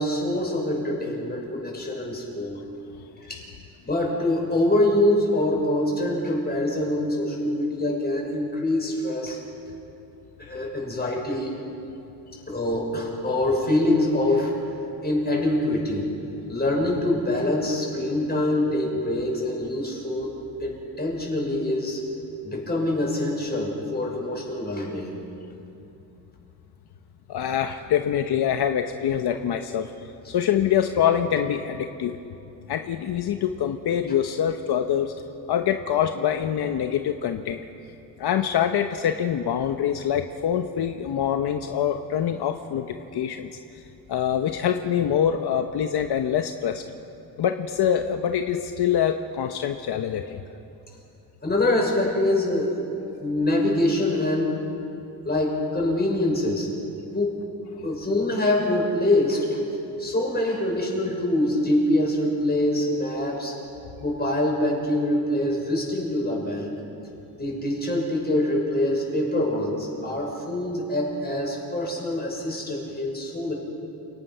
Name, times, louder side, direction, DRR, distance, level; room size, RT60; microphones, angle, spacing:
voice 1, 0.0-2.6 3.2-3.4 3.8-9.4 10.4-11.5 12.5-14.5 15.0-16.1 16.5-22.0 22.4-25.2 51.4-52.9 53.2-54.6 55.2-56.7 57.1-57.5 57.8-59.6 60.0-63.5 64.0-66.8 67.4-73.5, left 1 dB, 25° left, -1 dB, 6.5 m, -25 dB
voice 2, 27.3-29.9 30.3-32.2 32.7-35.1 35.5-37.6 38.2-43.5 44.1-46.8 47.4-50.4, left 9 dB, 70° left, 6 dB, 1.0 m, -25 dB
29.5 x 18.5 x 5.7 m, 2.8 s
cardioid pair, 100°, 40 cm